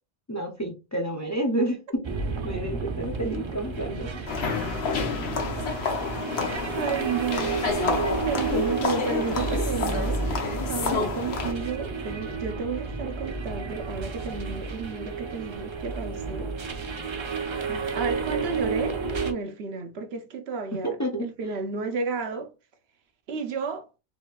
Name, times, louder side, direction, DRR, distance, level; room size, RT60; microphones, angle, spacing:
voice 1, 0.3-2.0 2.4-4.5 17.7-17.8 20.8-21.3, right 1 dB, 30° left, 0.3 m, -30 dB
sound 1, 2.0-19.3, right 4 dB, 45° right, 0.4 m, -31 dB
sound 2, 4.3-11.5, left 5 dB, 75° left, 1.0 m, -29 dB
voice 2, 6.8-7.7 8.3-16.5 17.6-22.5 23.3-23.9, right 4 dB, 80° right, 0.9 m, -32 dB
4.7 x 2.4 x 2.2 m
omnidirectional pair, 1.1 m